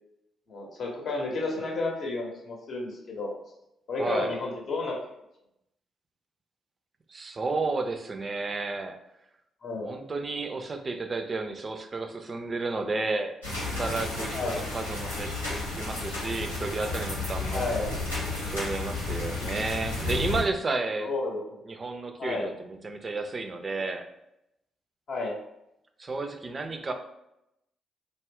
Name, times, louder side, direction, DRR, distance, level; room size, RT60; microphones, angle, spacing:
voice 1, 0.5-3.3 3.9-5.0 9.6-10.0 14.3-14.6 17.5-17.9 21.0-21.6 22.2-22.5 25.1-25.3, left 2 dB, 50° left, -1 dB, 0.7 m, -31 dB
voice 2, 4.0-4.3 7.1-9.0 9.8-13.3 13.6-17.6 18.4-21.1 21.7-24.0 26.0-26.9, right 3 dB, 35° right, 6 dB, 0.4 m, -32 dB
sound 1, 13.4-20.4, left 2 dB, 90° left, 0.6 m, -32 dB
2.3 x 2.0 x 3.5 m, 0.83 s
figure-of-eight pair, 40°, 0 cm